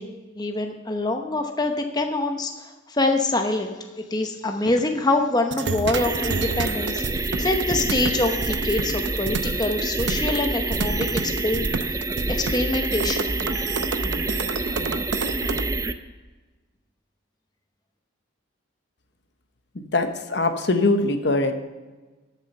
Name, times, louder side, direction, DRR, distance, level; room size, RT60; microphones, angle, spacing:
voice 1, 0.0-12.0 12.3-13.4, left 2 dB, 20° left, 4 dB, 0.8 m, -25 dB
sound 1, 5.5-15.6, right 4 dB, 60° right, 0.6 m, -30 dB
sound 2, 5.9-15.9, right 2 dB, 15° right, 0.5 m, -27 dB
voice 2, 19.7-21.5, left 2 dB, 60° left, 7 dB, 1.0 m, -22 dB
13.5 x 7.4 x 5.4 m, 1.3 s
head